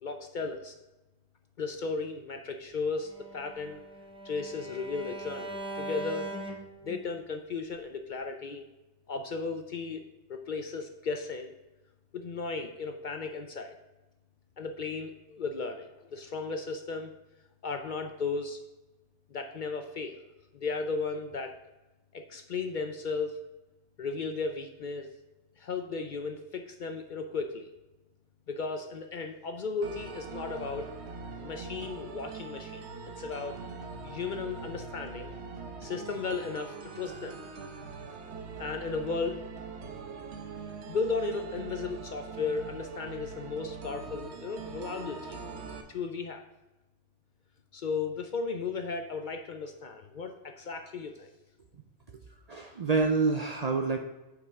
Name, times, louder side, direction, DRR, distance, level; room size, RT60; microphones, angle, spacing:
voice 1, 0.0-0.7 1.6-3.8 4.2-6.4 6.8-8.6 9.1-10.0 10.3-11.5 12.1-13.8 14.6-17.1 17.6-18.6 19.3-20.2 20.5-21.6 22.1-23.4 24.0-25.1 25.6-27.7 28.5-31.0 31.4-32.8 33.2-33.6 34.0-35.3 35.8-37.4 38.6-39.4 40.9-45.4 45.9-46.4 47.7-51.3, left 4 dB, 55° left, 6 dB, 0.6 m, -35 dB
Bowed string instrument, 3.1-7.2, right 1 dB, 5° right, 0.7 m, -41 dB
sound 1, 29.8-45.8, right 4 dB, 75° right, 1.0 m, -42 dB
voice 2, 52.5-54.0, right 4 dB, 50° right, 3 dB, 0.5 m, -27 dB
8.4 x 4.9 x 3.6 m, 1.1 s
omnidirectional pair, 1.2 m